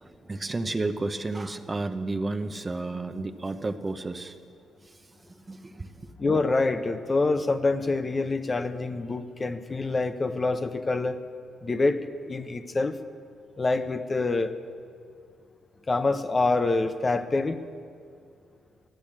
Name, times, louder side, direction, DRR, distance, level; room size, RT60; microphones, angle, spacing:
voice 1, 0.0-4.4 5.3-6.1, right 2 dB, 25° right, 0.7 m, -32 dB
voice 2, 6.2-11.2 11.6-13.0 13.6-14.5 15.9-17.6, left 3 dB, 30° left, 0.7 m, -26 dB
12.5 x 10.5 x 8.6 m
cardioid pair, 90°, 0 cm